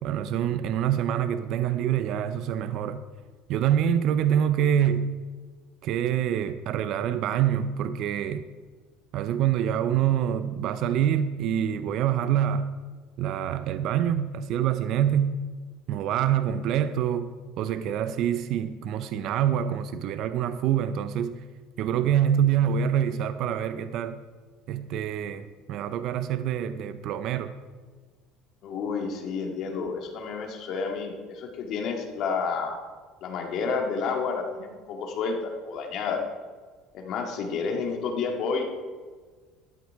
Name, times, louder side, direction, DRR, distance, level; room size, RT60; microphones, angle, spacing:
voice 1, 0.0-3.0 3.5-5.2 5.8-8.5 9.1-12.7 13.2-15.4 15.9-21.5 21.8-24.2 24.7-27.6, right 9 dB, 55° right, 12 dB, 0.5 m, -26 dB
voice 2, 28.6-32.8 33.2-36.2 36.9-38.6, left 5 dB, 55° left, 3 dB, 1.9 m, -30 dB
12.5 x 9.3 x 4.7 m, 1.5 s
cardioid pair, 135°, 0 cm